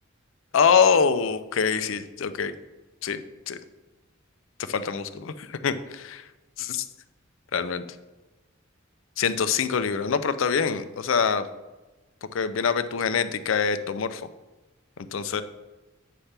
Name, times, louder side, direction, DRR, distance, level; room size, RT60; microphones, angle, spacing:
voice 1, 0.5-2.5 3.0-3.2 3.5-3.6 4.7-6.2 6.6-6.9 7.5-7.9 9.2-11.4 12.3-14.2 15.1-15.4, left 6 dB, 70° left, 12 dB, 0.5 m, -24 dB
8.3 x 3.4 x 5.7 m, 1.1 s
head